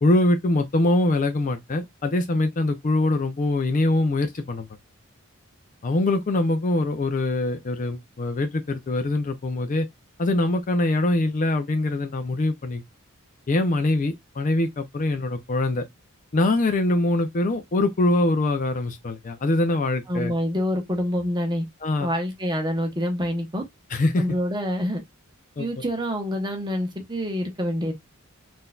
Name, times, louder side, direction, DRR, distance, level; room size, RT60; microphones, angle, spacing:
voice 1, 0.0-4.7 5.8-9.9 10.2-12.8 13.5-15.9 16.3-20.3 21.8-22.1 23.9-24.3 25.6-25.7, left 2 dB, 35° left, 0.4 m, -23 dB
voice 2, 20.1-21.7 22.0-23.6 24.2-25.0 25.6-27.9, equal, 20° right, 0.8 m, -26 dB
3.8 x 2.6 x 2.2 m
head